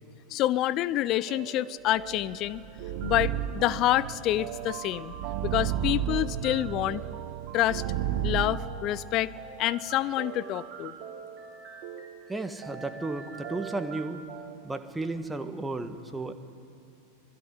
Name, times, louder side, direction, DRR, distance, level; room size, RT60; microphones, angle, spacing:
voice 1, 0.3-2.6 3.0-5.1 5.4-7.0 7.5-7.8 8.2-9.3 9.6-10.9, left 14 dB, 40° left, 18 dB, 0.7 m, -27 dB
sound 1, 1.3-14.6, right 8 dB, 35° right, 3.9 m, -43 dB
sound 2, 2.1-8.6, right 10 dB, 50° right, 1.0 m, -33 dB
voice 2, 12.3-14.2 14.6-16.3, right 2 dB, 10° right, 8 dB, 1.7 m, -34 dB
25.0 x 18.5 x 9.8 m, 2.9 s
figure-of-eight pair, 90°, 0 cm